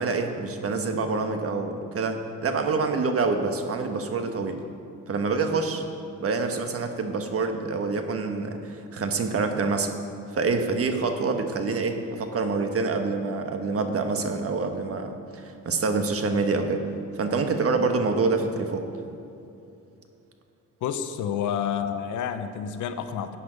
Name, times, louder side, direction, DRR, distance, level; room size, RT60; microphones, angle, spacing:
voice 1, 0.0-4.6 5.1-5.8 6.2-9.9 10.3-16.8 17.1-18.9, right 4 dB, 50° right, 6 dB, 1.3 m, -26 dB
voice 2, 20.8-23.4, left 8 dB, 80° left, 9 dB, 0.8 m, -29 dB
14.0 x 8.5 x 5.1 m, 2.7 s
cardioid pair, 90°, 30 cm